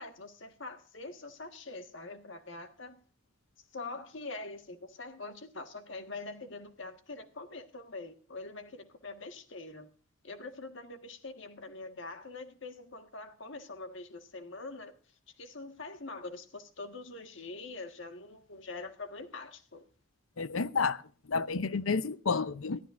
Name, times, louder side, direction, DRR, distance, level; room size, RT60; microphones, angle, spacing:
voice 1, 0.0-3.0 3.7-9.9 10.2-14.9 15.4-19.9, left 3 dB, 65° left, 1.5 m, -44 dB
voice 2, 20.4-21.0 21.3-22.8, left 4 dB, 85° left, 0.7 m, -30 dB
22.0 x 13.5 x 2.5 m
head